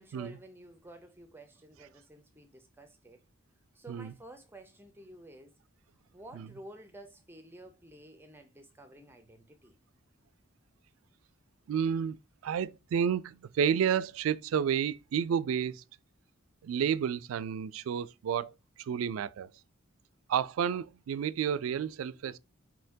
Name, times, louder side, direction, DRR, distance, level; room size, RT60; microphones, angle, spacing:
voice 1, 0.0-3.2 3.7-5.5 6.1-9.8, right 1 dB, 10° right, 0.4 m, -51 dB
voice 2, 11.7-12.2 12.4-15.8 16.6-18.5 18.9-19.5 20.3-22.4, right 8 dB, 75° right, 0.3 m, -30 dB
4.3 x 4.3 x 2.6 m
head